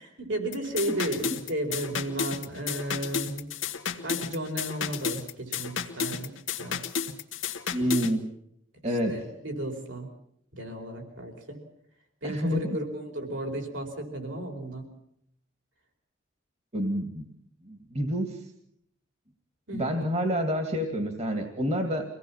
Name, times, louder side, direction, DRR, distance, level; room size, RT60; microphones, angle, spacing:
voice 1, 0.2-3.5 4.0-6.8 8.8-10.1 10.5-11.6 12.2-14.9 19.7-19.9, right 1 dB, 70° right, 2 dB, 4.6 m, -34 dB
sound 1, 0.5-8.1, left 6 dB, 80° left, 1.6 m, -32 dB
voice 2, 7.7-8.3 8.8-9.1 12.2-12.8 16.7-17.3 17.6-18.4 19.7-22.1, equal, 35° right, 4 dB, 2.3 m, -28 dB
25.0 x 18.0 x 7.2 m, 0.73 s
head